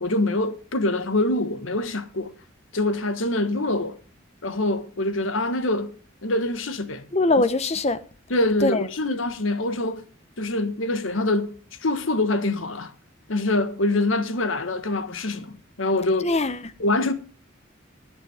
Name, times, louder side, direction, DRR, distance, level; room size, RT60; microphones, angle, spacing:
voice 1, 0.0-2.3 2.7-4.0 4.4-5.9 6.2-7.1 8.3-10.1 10.4-12.9 13.3-16.3 16.8-17.1, left 2 dB, 75° left, 1.4 m, -25 dB
voice 2, 7.1-8.0 8.6-8.9 16.2-16.6, left 2 dB, 30° left, 0.7 m, -22 dB
21.0 x 6.9 x 3.5 m
head